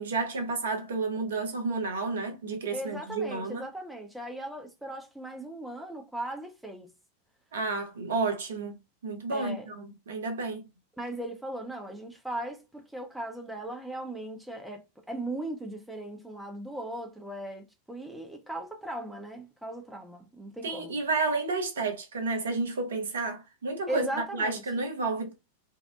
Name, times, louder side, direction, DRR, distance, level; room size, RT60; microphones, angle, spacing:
voice 1, 0.0-3.7 7.5-8.8 9.0-10.6 20.6-25.3, right 3 dB, 65° right, 0.7 m, -31 dB
voice 2, 2.7-6.9 9.3-9.7 11.0-14.8 15.1-20.9 23.9-24.6, right 1 dB, 5° right, 0.5 m, -38 dB
2.7 x 2.0 x 2.3 m
figure-of-eight pair, 90°, 0 cm